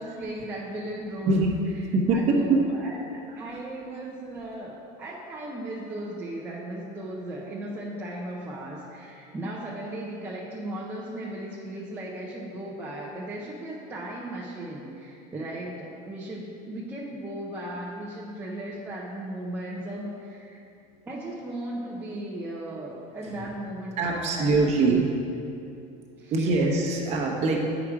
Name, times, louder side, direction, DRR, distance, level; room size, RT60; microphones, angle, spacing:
voice 1, 0.0-1.4 2.1-20.6 21.1-25.0 26.2-26.5, right 1 dB, 10° right, -6 dB, 0.5 m, -36 dB
voice 2, 1.9-2.6 23.2-23.4 24.0-25.1 26.3-27.7, right 3 dB, 30° right, -1 dB, 1.0 m, -23 dB
8.6 x 4.9 x 4.7 m, 2.6 s
cardioid pair, 175°, 21 cm